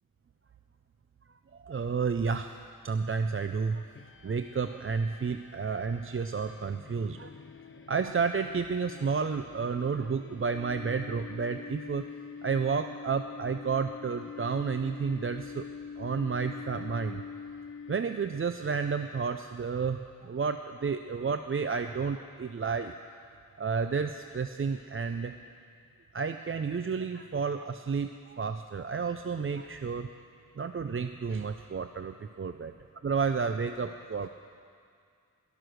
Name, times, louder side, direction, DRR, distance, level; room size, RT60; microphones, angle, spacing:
voice 1, 1.6-2.5 2.8-3.8 4.2-7.3 7.9-12.0 12.4-15.7 16.0-17.2 17.9-22.9 23.6-25.3 26.1-30.1 30.6-32.7 33.0-34.3, right 5 dB, 40° right, 8 dB, 0.4 m, -31 dB
sound 1, 3.9-18.4, left 6 dB, 35° left, 0.5 m, -45 dB
12.5 x 12.0 x 6.4 m, 2.2 s
wide cardioid pair, 55°, 35 cm